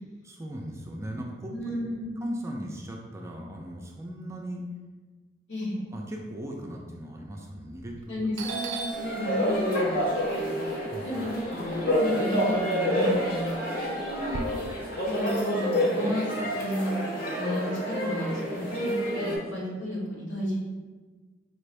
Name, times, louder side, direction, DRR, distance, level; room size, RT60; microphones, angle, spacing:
voice 1, 0.2-1.8 2.2-4.6 5.8-8.0 8.5-8.7 10.9-11.1, equal, 15° right, 0 dB, 0.4 m, -38 dB
voice 2, 1.5-2.1 5.5-5.8 8.1-14.6 15.0-16.9 17.3-20.6, equal, 85° left, -5 dB, 1.3 m, -33 dB
Doorbell, 7.8-8.1 8.4-12.5 12.9-14.4, right 4 dB, 80° right, 0.4 m, -39 dB
sound 1, 8.9-19.4, equal, 50° left, 0.8 m, -28 dB
4.3 x 2.5 x 3.2 m, 1.4 s
head